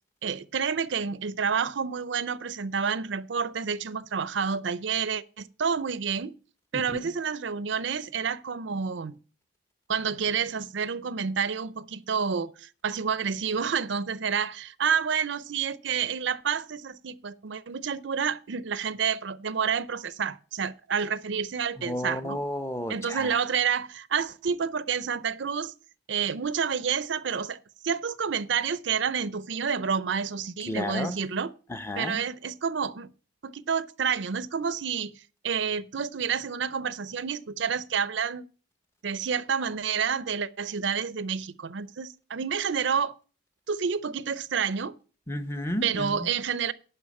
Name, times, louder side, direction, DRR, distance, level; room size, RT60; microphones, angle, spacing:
voice 1, 0.2-6.3 6.7-9.2 9.9-22.4 22.9-25.7 26.1-31.5 32.0-33.1 33.4-38.5 39.0-43.2 43.7-44.9 45.8-46.7, right 6 dB, 70° right, 0.5 m, -29 dB
voice 2, 21.9-23.3 30.7-31.1 31.7-32.2 45.3-46.1, left 1 dB, 15° left, 0.7 m, -32 dB
11.0 x 4.8 x 8.4 m
head